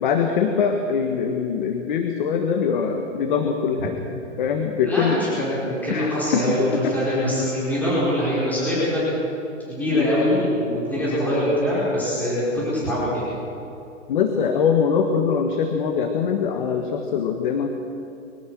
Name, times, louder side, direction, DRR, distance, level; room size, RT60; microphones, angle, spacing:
voice 1, 0.0-3.9 4.4-5.2 5.9-7.0 9.9-10.1 14.1-17.7, left 6 dB, 40° left, 5 dB, 1.5 m, -23 dB
voice 2, 4.8-9.0 9.7-13.2, equal, 5° left, -9 dB, 4.9 m, -23 dB
23.5 x 18.0 x 6.2 m, 2.8 s
hypercardioid pair, 170°, 37 cm